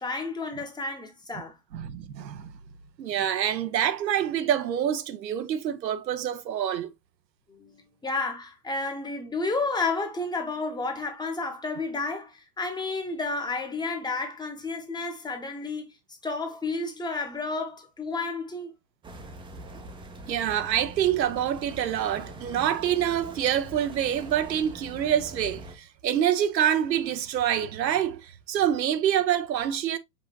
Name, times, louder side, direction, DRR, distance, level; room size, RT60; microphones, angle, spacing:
voice 1, 0.0-1.6 7.5-15.9 16.2-18.7, left 3 dB, 10° left, 0.8 m, -31 dB
voice 2, 1.7-2.5 3.0-6.9 20.3-30.0, right 10 dB, 90° right, 0.8 m, -26 dB
sound 1, 19.0-25.8, right 1 dB, 10° right, 0.5 m, -43 dB
5.6 x 3.9 x 2.2 m
hypercardioid pair, 115°, 49 cm